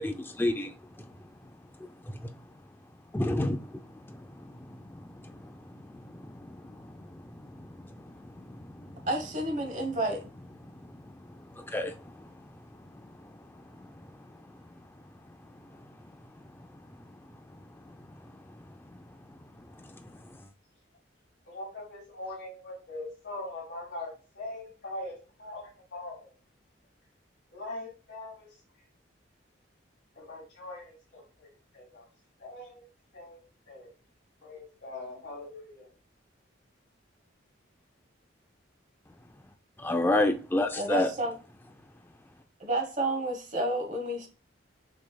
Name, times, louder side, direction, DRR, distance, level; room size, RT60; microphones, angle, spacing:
voice 1, 0.0-1.5 1.8-2.4 3.1-9.1 9.8-9.9 10.6-14.7 14.9-20.4 39.8-41.1, left 1 dB, 10° left, 0.4 m, -35 dB
voice 2, 9.0-10.3 40.8-41.3 42.6-44.3, right 1 dB, 40° right, 1.0 m, -30 dB
voice 3, 21.5-26.3 27.5-28.5 30.2-31.5 31.7-32.0 32.4-32.9 33.1-33.4 33.7-33.9 34.4-35.9, left 2 dB, 60° left, 2.3 m, -42 dB
6.2 x 3.3 x 2.2 m
head